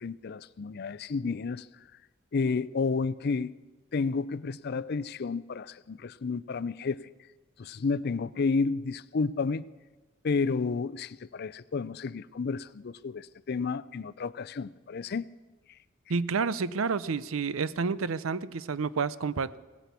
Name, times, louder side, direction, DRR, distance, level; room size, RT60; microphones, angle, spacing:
voice 1, 0.0-1.6 2.3-3.5 3.9-7.1 7.6-9.6 10.2-15.3, left 4 dB, 50° left, 18 dB, 0.5 m, -31 dB
voice 2, 16.1-19.6, right 5 dB, 90° right, 17 dB, 0.6 m, -29 dB
17.5 x 10.0 x 8.3 m, 1.2 s
head